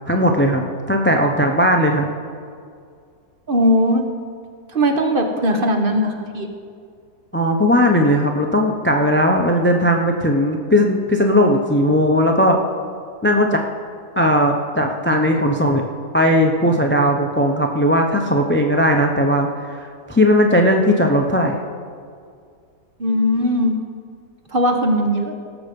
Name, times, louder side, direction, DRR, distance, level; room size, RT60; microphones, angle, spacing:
voice 1, 0.1-2.1 7.3-12.6 13.2-13.6 14.2-15.9 16.1-21.6, equal, 15° left, 3 dB, 0.4 m, -17 dB
voice 2, 3.5-4.0 4.7-6.5 23.0-23.7 24.5-25.4, equal, 40° right, 4 dB, 1.1 m, -18 dB
18.0 x 7.1 x 5.3 m, 2.2 s
omnidirectional pair, 1.7 m